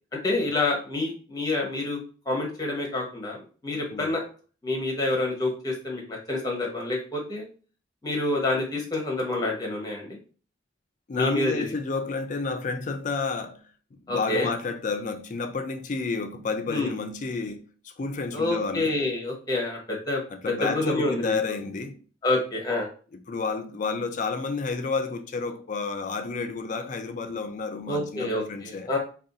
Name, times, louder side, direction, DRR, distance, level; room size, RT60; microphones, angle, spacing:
voice 1, 0.2-2.0 2.3-4.2 4.6-7.4 8.0-10.2 11.1-11.6 14.1-14.5 16.7-16.9 18.3-21.3 22.2-22.9 27.9-29.0, left 2 dB, 20° left, 0.8 m, -27 dB
voice 2, 11.1-13.6 13.9-19.0 20.3-22.0 23.3-28.9, left 4 dB, 40° left, 0.3 m, -30 dB
2.5 x 2.3 x 3.8 m
head